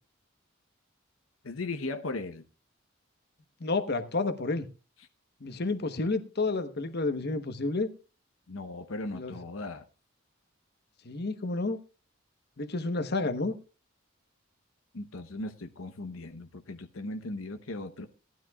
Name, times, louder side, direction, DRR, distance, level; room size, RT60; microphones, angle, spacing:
voice 1, 1.4-2.4 8.5-9.9 14.9-18.1, left 2 dB, 80° left, 0.9 m, -37 dB
voice 2, 3.6-4.6 5.4-7.9 9.1-9.3 11.0-11.8 12.6-13.5, left 3 dB, 55° left, 1.1 m, -30 dB
18.0 x 12.5 x 2.3 m
head